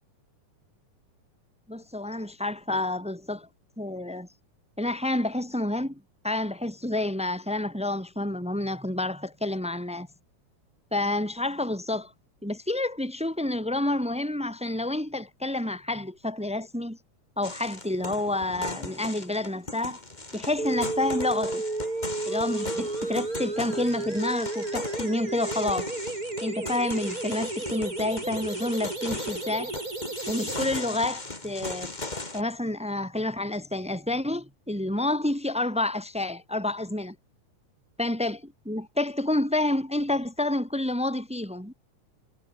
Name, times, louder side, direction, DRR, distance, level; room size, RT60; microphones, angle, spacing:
voice 1, 1.7-3.5 3.8-4.3 4.8-10.1 10.9-12.1 12.4-17.0 17.4-20.0 20.3-21.6 22.3-25.9 26.4-29.7 30.3-31.9 32.3-37.1 38.0-41.7, left 1 dB, 5° right, 1.0 m, -29 dB
sound 1, 17.4-32.4, left 2 dB, 15° left, 2.2 m, -38 dB
sound 2, 20.6-30.6, right 2 dB, 25° right, 5.5 m, -32 dB
omnidirectional pair, 3.5 m